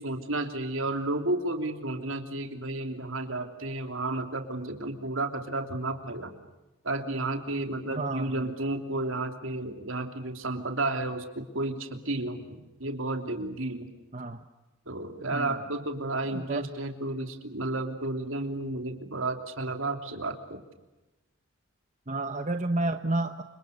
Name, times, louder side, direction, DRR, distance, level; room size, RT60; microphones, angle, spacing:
voice 1, 0.0-6.4 6.8-13.9 14.9-20.6, right 2 dB, 70° right, 6 dB, 3.2 m, -32 dB
voice 2, 7.9-8.5 14.1-14.4 15.3-15.6 16.3-16.6 22.1-23.4, right 2 dB, 35° right, 8 dB, 1.1 m, -30 dB
29.5 x 27.0 x 6.6 m, 1.1 s
head